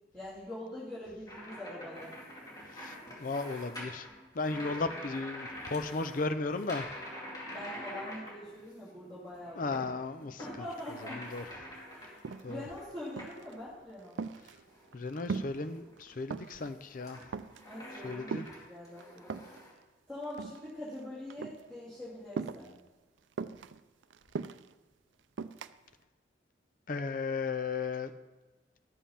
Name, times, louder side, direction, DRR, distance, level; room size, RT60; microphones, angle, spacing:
voice 1, 0.1-2.1 7.5-9.7 10.4-11.2 11.9-12.1 12.5-14.2 17.6-18.4 18.7-19.4 20.1-22.7, left 1 dB, ahead, -12 dB, 2.9 m, -43 dB
sound 1, 1.3-8.9 9.2-13.7 14.2-14.9 15.4-19.7, left 1 dB, 20° left, 2.5 m, -46 dB
voice 2, 2.7-4.1 4.3-6.9 9.6-10.7 11.1-11.4 12.4-12.6 14.9-17.2 18.0-18.5 26.9-28.1, left 3 dB, 45° left, 9 dB, 0.5 m, -35 dB
sound 2, 11.7-11.8 12.1-12.7 13.2-13.6 13.9-15.7 16.0-16.7 17.1-17.7 18.3-19.6 20.2-21.0 21.3-21.6 22.3-22.8 23.4-24.7 25.4-25.7, right 5 dB, 85° right, 0.4 m, -39 dB
12.5 x 7.3 x 5.7 m, 1.2 s
head